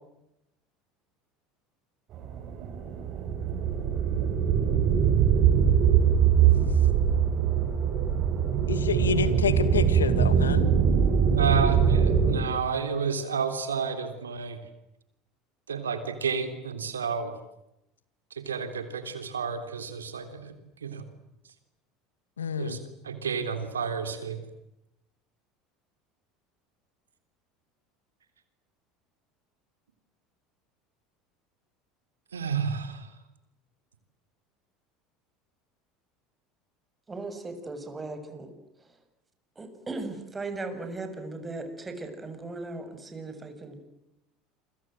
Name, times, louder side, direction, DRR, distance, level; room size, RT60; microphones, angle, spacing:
sound 1, 2.1-12.4, right 7 dB, 50° right, 5.6 m, -22 dB
voice 1, 8.7-10.7 22.4-22.8, left 7 dB, 90° left, 13 dB, 2.1 m, -29 dB
voice 2, 11.4-14.6 15.7-17.3 18.3-20.5 20.8-21.0 22.6-24.4 32.3-33.1, right 6 dB, 90° right, 9 dB, 3.4 m, -31 dB
voice 3, 37.1-38.5 39.6-43.8, right 3 dB, 20° right, 8 dB, 6.8 m, -37 dB
28.5 x 25.0 x 7.8 m, 0.86 s
hypercardioid pair, 75°, 0 cm